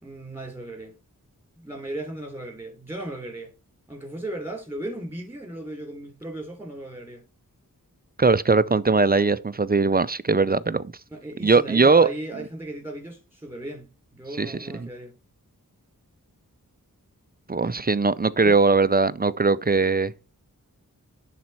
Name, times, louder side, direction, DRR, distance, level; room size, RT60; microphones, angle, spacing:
voice 1, 0.0-1.0 1.6-3.5 3.9-7.2 11.1-15.2 18.4-18.6, right 1 dB, 5° right, 4.2 m, -36 dB
voice 2, 8.2-10.9 11.4-12.1 14.4-14.9 17.5-20.1, right 4 dB, 25° right, 0.5 m, -20 dB
10.5 x 4.2 x 4.5 m
wide cardioid pair, 50°, 35 cm